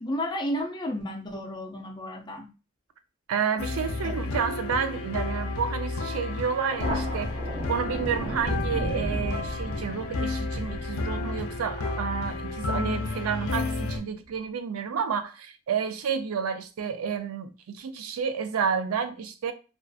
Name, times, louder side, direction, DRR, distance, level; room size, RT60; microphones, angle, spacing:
voice 1, 0.0-2.5 4.0-4.1, equal, 20° left, 0.4 m, -32 dB
voice 2, 3.3-7.3 7.7-19.5, right 6 dB, 85° right, 0.4 m, -30 dB
sound 1, 3.6-14.0, left 3 dB, 90° left, 0.4 m, -31 dB
Thunder, 6.7-13.8, right 1 dB, 35° right, 0.6 m, -36 dB
2.4 x 2.4 x 2.3 m
head